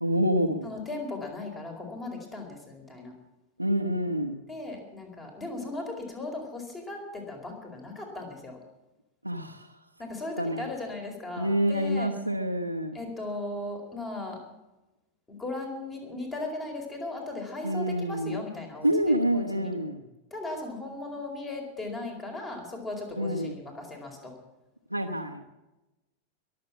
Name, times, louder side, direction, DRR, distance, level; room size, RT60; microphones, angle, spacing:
voice 1, 0.0-0.7 3.6-4.4 9.2-9.7 10.4-10.7 11.4-13.0 17.6-18.4 18.8-20.0 23.2-23.5 24.9-25.4, equal, 90° right, 0 dB, 0.9 m, -27 dB
voice 2, 0.6-3.1 4.5-8.6 10.0-12.1 12.9-14.4 15.3-19.7 20.3-24.4, left 2 dB, 15° left, 2 dB, 4.6 m, -37 dB
22.0 x 7.8 x 7.3 m, 1.0 s
figure-of-eight pair, 90°, 0 cm